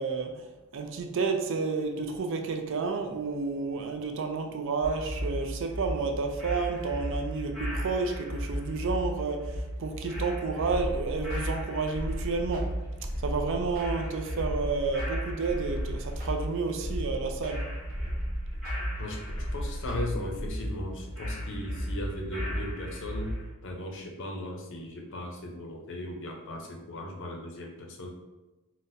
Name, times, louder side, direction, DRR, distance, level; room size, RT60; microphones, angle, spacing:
voice 1, 0.0-12.8 13.2-17.6, right 4 dB, 60° right, 4 dB, 0.4 m, -31 dB
sound 1, 4.8-23.5, equal, ahead, 1.2 m, -35 dB
sound 2, 10.7-20.5, equal, 45° right, 0.9 m, -38 dB
voice 2, 18.9-28.1, left 1 dB, 55° left, 1 dB, 0.6 m, -37 dB
4.0 x 2.1 x 2.5 m, 1.1 s
head